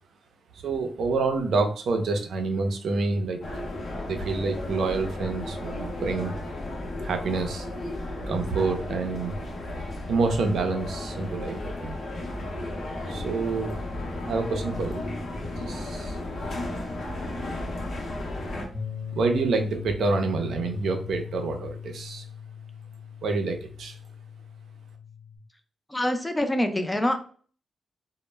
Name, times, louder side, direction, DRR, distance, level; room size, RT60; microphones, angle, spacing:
voice 1, 0.6-3.4 4.0-6.3 7.0-7.7 8.3-9.4 10.1-12.0 13.1-13.8 14.3-15.0 15.6-16.2 19.1-22.2 23.2-24.0, right 3 dB, 75° right, 5 dB, 0.5 m, -27 dB
sound 1, 3.4-18.7, left 1 dB, 60° left, 0.6 m, -34 dB
sound 2, 18.7-25.4, left 7 dB, 40° left, 0.9 m, -39 dB
voice 2, 25.9-27.2, left 1 dB, 10° left, 6 dB, 0.4 m, -25 dB
2.1 x 2.0 x 3.2 m, 0.43 s
cardioid pair, 95°, 0 cm